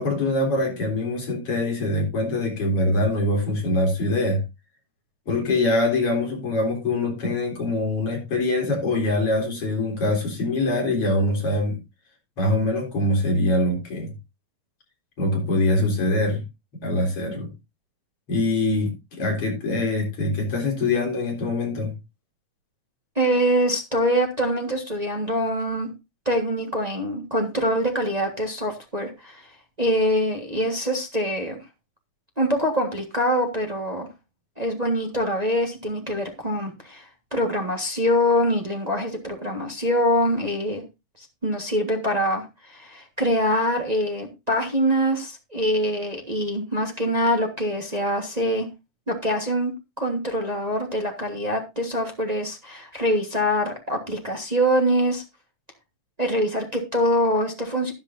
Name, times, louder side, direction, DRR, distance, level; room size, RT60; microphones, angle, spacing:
voice 1, 0.0-4.4 5.3-11.8 12.4-14.1 15.2-16.4 16.8-17.5 18.3-21.9, left 2 dB, 45° left, 2 dB, 4.4 m, -23 dB
voice 2, 23.1-25.9 26.2-29.4 29.8-31.6 32.4-34.1 34.6-40.8 41.2-48.7 49.1-49.7 50.0-55.2 56.2-57.9, equal, 35° right, 2 dB, 0.6 m, -24 dB
12.0 x 11.0 x 2.7 m, 0.24 s
omnidirectional pair, 3.6 m